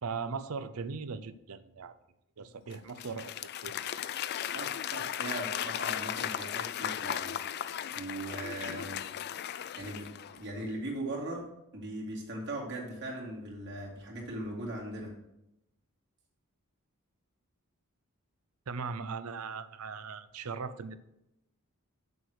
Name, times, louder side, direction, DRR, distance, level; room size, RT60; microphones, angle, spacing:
voice 1, 0.0-1.9 2.4-3.3 3.6-3.9 18.7-21.0, right 5 dB, 85° right, 13 dB, 0.6 m, -39 dB
Applause / Crowd, 2.7-10.5, left 10 dB, 50° left, 0.3 m, -36 dB
voice 2, 4.5-9.0 9.7-10.1 10.3-11.4 11.7-15.1, right 1 dB, 55° right, -2 dB, 2.5 m, -39 dB
7.0 x 6.5 x 6.3 m, 0.87 s
head